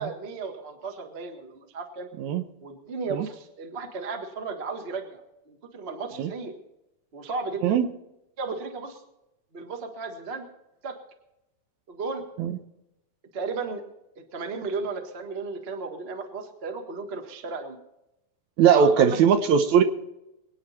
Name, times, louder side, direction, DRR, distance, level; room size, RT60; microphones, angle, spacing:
voice 1, 0.0-2.1 2.6-6.5 7.1-7.7 8.4-9.0 9.5-10.5 10.8-11.0 11.9-12.3 13.3-13.8 14.1-17.8 18.7-19.2, right 4 dB, 35° right, 5 dB, 1.0 m, -34 dB
voice 2, 18.6-19.8, right 7 dB, 70° right, 8 dB, 2.1 m, -19 dB
24.0 x 9.4 x 4.2 m, 0.89 s
omnidirectional pair, 3.7 m